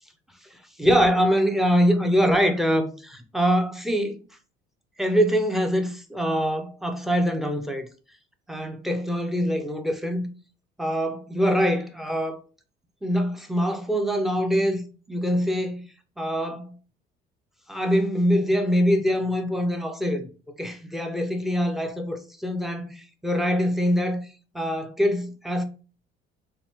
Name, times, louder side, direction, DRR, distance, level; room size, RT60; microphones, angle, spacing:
voice 1, 0.8-4.2 5.0-7.9 8.5-10.3 10.8-12.4 13.0-14.8 15.1-15.8 16.2-16.8 17.7-20.3 20.6-24.2 24.5-25.6, equal, ahead, 0.4 m, -24 dB
4.2 x 2.5 x 3.4 m
cardioid pair, 175°, 18 cm